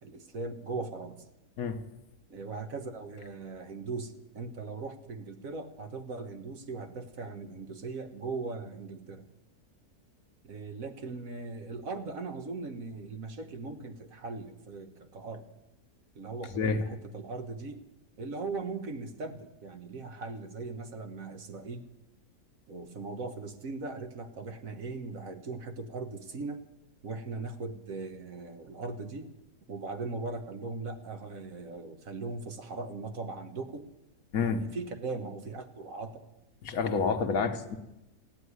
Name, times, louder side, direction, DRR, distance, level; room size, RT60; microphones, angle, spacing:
voice 1, 0.0-1.2 2.3-9.3 10.4-15.5 16.1-17.8 18.2-21.9 22.7-26.6 27.0-29.3 29.7-33.9 34.4-36.3, right 3 dB, 60° right, 8 dB, 1.6 m, -39 dB
voice 2, 36.6-37.8, left 5 dB, 65° left, 8 dB, 1.5 m, -28 dB
15.0 x 9.9 x 9.5 m, 0.95 s
omnidirectional pair, 1.6 m